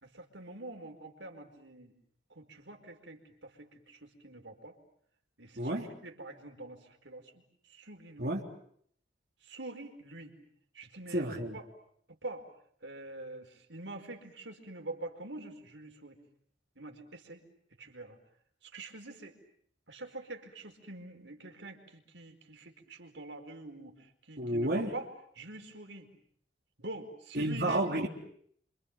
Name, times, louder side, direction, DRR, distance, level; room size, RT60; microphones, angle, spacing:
voice 1, 0.0-1.9 2.3-4.8 5.4-8.4 9.4-10.3 10.7-11.7 12.1-12.5 12.8-16.2 16.7-17.4 17.8-18.2 18.6-19.4 19.9-25.1 25.3-26.1 26.8-27.8, right 2 dB, 85° right, 4 dB, 4.8 m, -46 dB
voice 2, 5.6-5.9 8.2-8.4 11.1-11.6 24.4-24.9 27.4-28.1, right 1 dB, 55° right, -1 dB, 3.5 m, -31 dB
29.0 x 26.5 x 7.4 m, 0.65 s
head